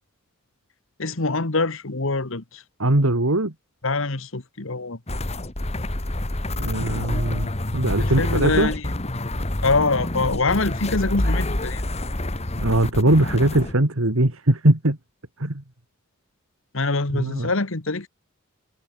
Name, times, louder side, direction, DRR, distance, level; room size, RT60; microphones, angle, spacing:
voice 1, 1.0-2.6 3.8-5.0 8.0-8.9 9.6-11.8 16.7-18.1, left 3 dB, 65° left, 1.6 m, -24 dB
voice 2, 2.8-3.5 6.6-8.7 12.6-15.0 15.4-15.6 17.1-17.5, right 1 dB, 75° right, 2.6 m, -21 dB
sound 1, 5.1-13.7, left 1 dB, 30° left, 1.8 m, -27 dB
head